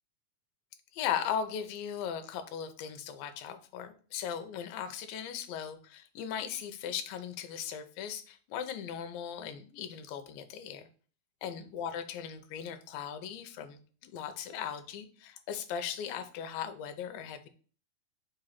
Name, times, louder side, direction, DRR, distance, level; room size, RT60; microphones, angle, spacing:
voice 1, 0.9-10.9 11.4-17.5, left 8 dB, 75° left, 8 dB, 2.4 m, -38 dB
5.5 x 4.0 x 5.7 m, 0.40 s
omnidirectional pair, 4.4 m